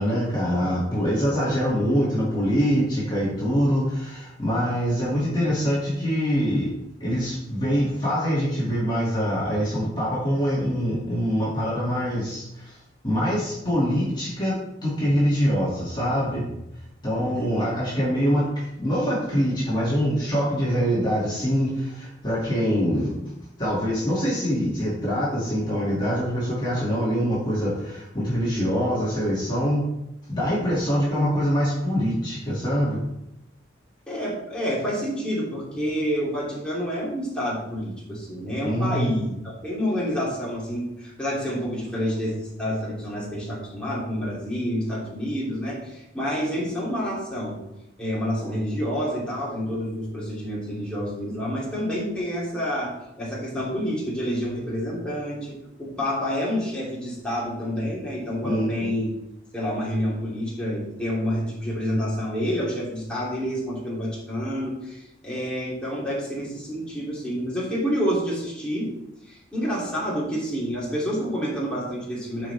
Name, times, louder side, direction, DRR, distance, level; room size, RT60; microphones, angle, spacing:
voice 1, 0.0-6.7 7.0-12.8 13.0-16.5 17.0-23.1 23.6-29.8 30.3-33.0 38.6-39.1 58.4-58.9, equal, 25° left, -7 dB, 2.3 m, -24 dB
voice 2, 17.2-17.7 34.1-47.6 48.0-52.9 53.2-59.1 59.5-68.9 69.3-72.5, equal, 5° left, -7 dB, 2.9 m, -28 dB
13.0 x 5.1 x 3.4 m, 0.86 s
head